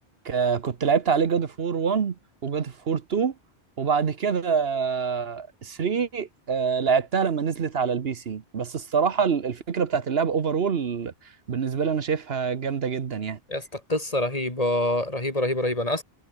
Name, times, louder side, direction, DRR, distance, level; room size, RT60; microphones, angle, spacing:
voice 1, 0.2-2.1 2.4-3.3 3.8-11.1 11.5-13.4, right 6 dB, 70° right, 1.3 m, -25 dB
voice 2, 13.5-16.0, left 1 dB, 35° left, 3.7 m, -26 dB
omnidirectional pair, 1.1 m